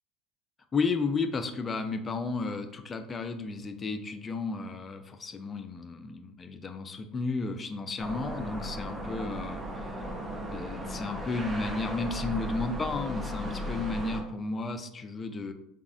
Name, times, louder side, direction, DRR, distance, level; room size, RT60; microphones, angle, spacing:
voice 1, 0.7-9.9 10.5-15.5, left 3 dB, 30° left, 7 dB, 0.3 m, -33 dB
sound 1, 8.0-14.2, equal, 25° right, 0.6 m, -36 dB
3.5 x 2.0 x 2.4 m, 0.80 s
supercardioid pair, 90°, 0 cm